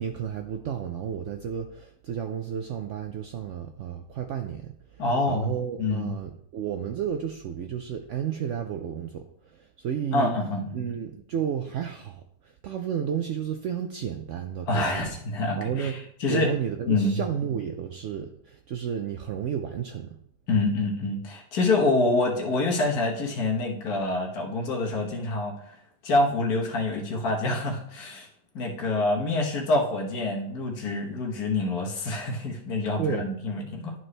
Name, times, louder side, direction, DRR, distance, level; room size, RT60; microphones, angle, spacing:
voice 1, 0.0-10.3 10.7-15.1 15.6-16.0 16.3-20.2 33.0-33.3, right 8 dB, 85° right, 5 dB, 0.6 m, -32 dB
voice 2, 5.0-5.5 5.8-6.1 10.1-10.8 14.7-16.5 16.9-17.2 20.5-25.8 26.0-28.3 28.5-33.9, left 2 dB, 65° left, -1 dB, 1.7 m, -26 dB
11.0 x 4.5 x 3.2 m, 0.71 s
omnidirectional pair, 1.8 m